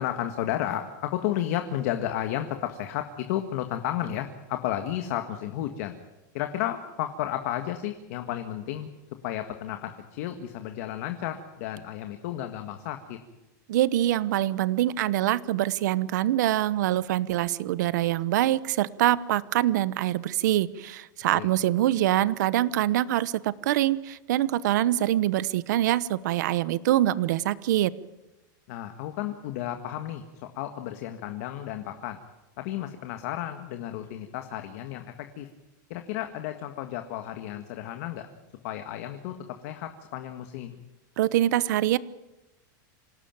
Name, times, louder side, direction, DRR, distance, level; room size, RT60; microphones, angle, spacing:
voice 1, 0.0-6.0 6.3-8.9 9.2-13.2 21.3-21.5 28.7-30.2 30.5-32.2 32.6-35.5 35.9-38.3 38.6-40.8, left 12 dB, 50° left, 7 dB, 1.7 m, -32 dB
voice 2, 13.7-27.9 41.2-42.0, right 14 dB, 60° right, 18 dB, 1.0 m, -24 dB
26.5 x 18.0 x 9.0 m, 0.99 s
supercardioid pair, 170°, 11 cm